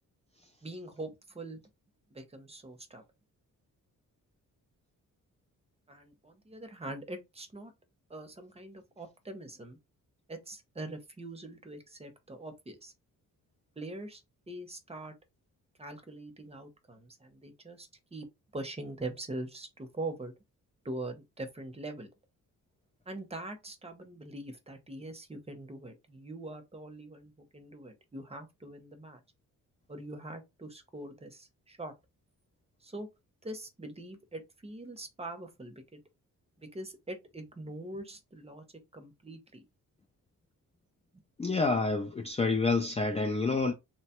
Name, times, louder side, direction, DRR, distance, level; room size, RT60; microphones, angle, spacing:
voice 1, 0.6-1.6 2.1-3.0 5.9-7.7 8.1-9.8 10.3-12.9 13.8-14.2 14.5-15.1 15.8-18.3 18.5-20.3 20.8-22.1 23.1-29.2 29.9-31.9 32.8-33.1 33.4-36.0 36.6-38.6 38.9-39.6, right 2 dB, 20° right, 0.7 m, -43 dB
voice 2, 41.4-43.7, left 3 dB, 20° left, 0.4 m, -28 dB
3.0 x 2.2 x 2.9 m
cardioid pair, 105°, 33 cm